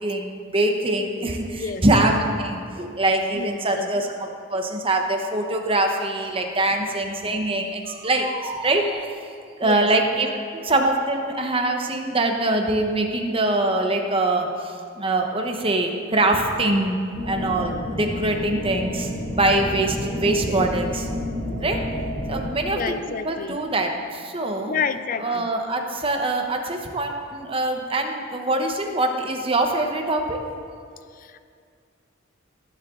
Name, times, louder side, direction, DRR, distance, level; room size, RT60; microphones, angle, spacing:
voice 1, 0.0-9.1 9.6-17.0 17.3-21.1 21.6-21.8 22.3-22.9 23.2-24.8 25.2-30.4, right 2 dB, 30° right, 3 dB, 1.0 m, -23 dB
voice 2, 1.5-1.8 3.3-3.9 9.6-9.9 22.7-23.6 24.7-25.5 31.2-31.4, left 5 dB, 45° left, 12 dB, 0.5 m, -29 dB
sound 1, 17.1-22.4, equal, ahead, 3.0 m, -30 dB
18.5 x 7.6 x 3.8 m, 2.3 s
head